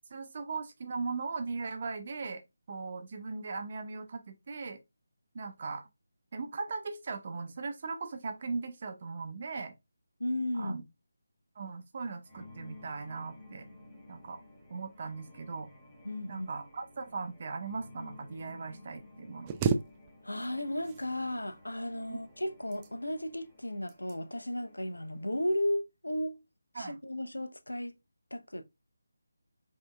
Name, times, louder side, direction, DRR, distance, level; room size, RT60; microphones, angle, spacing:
voice 1, 0.1-2.4 2.7-4.8 5.3-5.8 6.3-9.7 10.6-10.8 11.6-13.7 14.1-14.4 14.7-15.7 16.3-19.5 22.1-22.2 26.7-26.9, right 4 dB, 35° right, 0.7 m, -38 dB
voice 2, 10.2-10.8 16.0-16.5 20.2-26.4 26.7-28.0 28.3-28.6, left 1 dB, 75° left, 0.6 m, -34 dB
sound 1, 12.2-25.5, left 2 dB, 10° left, 1.2 m, -54 dB
sound 2, 19.5-20.5 20.8-21.6 22.5-23.3 23.9-24.2 24.7-24.9, right 6 dB, 15° right, 0.3 m, -33 dB
5.2 x 2.7 x 2.2 m
figure-of-eight pair, 155°, 0 cm